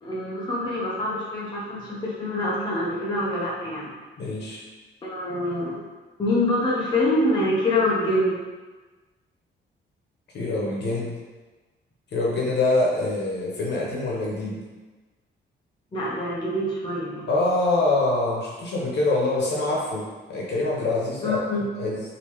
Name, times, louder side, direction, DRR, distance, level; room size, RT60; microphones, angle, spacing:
voice 1, 0.0-3.9 5.0-5.8 6.2-8.4 15.9-17.3 21.2-21.6, left 1 dB, 20° left, -7 dB, 0.6 m, -25 dB
voice 2, 4.2-4.6 10.3-11.2 12.1-14.6 17.3-21.4 21.8-22.0, left 2 dB, 60° left, -4 dB, 0.9 m, -25 dB
3.3 x 2.7 x 3.1 m, 1.3 s
cardioid pair, 145°, 20 cm